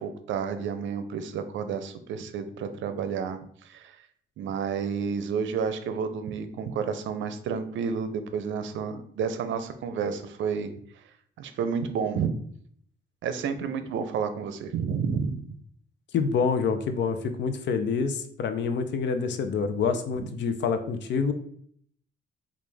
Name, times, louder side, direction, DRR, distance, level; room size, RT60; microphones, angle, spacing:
voice 1, 0.0-3.4 3.6-4.0 4.4-10.7 11.4-12.3 13.2-15.5, right 6 dB, 75° right, 9 dB, 0.5 m, -30 dB
voice 2, 16.1-21.3, left 5 dB, 65° left, 9 dB, 0.6 m, -27 dB
4.9 x 2.5 x 3.4 m, 0.62 s
cardioid pair, 90°, 20 cm